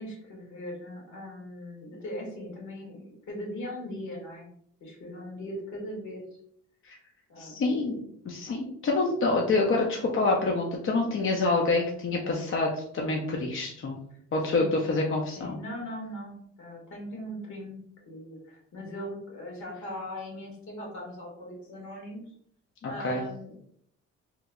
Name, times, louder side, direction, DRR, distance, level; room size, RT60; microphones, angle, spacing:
voice 1, 0.0-4.5 4.8-6.2 7.3-8.3 11.0-11.1 14.5-14.8 15.3-22.2 22.8-23.6, equal, 70° left, -1 dB, 1.5 m, -40 dB
voice 2, 7.4-8.0 8.2-14.0 14.3-15.6 22.8-23.2, left 3 dB, 45° left, 0 dB, 0.6 m, -27 dB
2.9 x 2.1 x 3.6 m, 0.68 s
cardioid pair, 90°, 30 cm